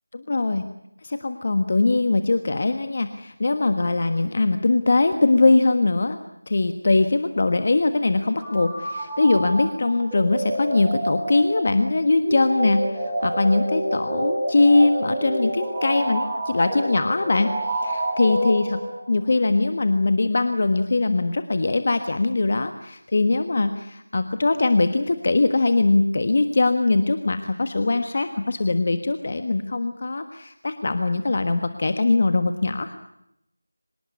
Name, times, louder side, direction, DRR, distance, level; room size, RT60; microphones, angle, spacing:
voice 1, 0.1-0.6 1.0-6.2 6.5-18.7 19.1-32.9, left 3 dB, 40° left, 9 dB, 1.4 m, -21 dB
sound 1, 8.4-19.2, right 1 dB, 5° right, 5.4 m, -28 dB
25.5 x 20.0 x 9.5 m, 0.80 s
figure-of-eight pair, 170°, 0 cm